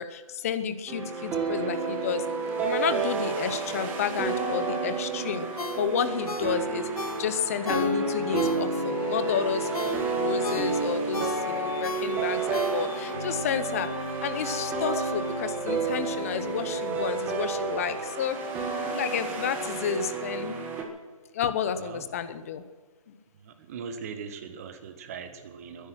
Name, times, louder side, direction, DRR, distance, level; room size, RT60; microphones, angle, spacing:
voice 1, 0.0-2.2 2.6-5.5 5.8-6.9 7.2-13.9 14.2-18.4 18.9-20.6 21.3-22.6 23.1-23.2, left 7 dB, 25° left, 12 dB, 0.8 m, -31 dB
sound 1, 0.9-20.8, right 4 dB, 10° right, 1.5 m, -30 dB
Ringtone, 5.6-9.0 9.4-13.2 13.6-13.7, left 4 dB, 85° left, 2.0 m, -37 dB
Piano, 8.4-18.1, left 6 dB, 40° left, 3.0 m, -41 dB
voice 2, 23.4-25.9, right 6 dB, 25° right, 8 dB, 1.5 m, -40 dB
22.0 x 10.5 x 6.3 m, 1.4 s
hypercardioid pair, 160°, 18 cm